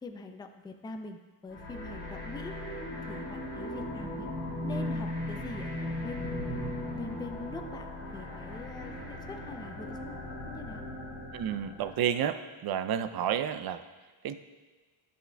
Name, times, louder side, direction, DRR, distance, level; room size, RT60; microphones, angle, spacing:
voice 1, 0.0-2.5 3.0-3.2 3.5-4.3 4.6-6.6 6.9-7.9 8.1-10.2 10.5-10.9, left 3 dB, 10° left, 6 dB, 0.4 m, -44 dB
sound 1, 1.5-12.1, left 1 dB, 30° left, 2.1 m, -37 dB
voice 2, 11.3-13.8 14.2-14.4, right 9 dB, 50° right, 11 dB, 0.5 m, -30 dB
10.5 x 6.3 x 2.2 m, 1.3 s
cardioid pair, 90°, 49 cm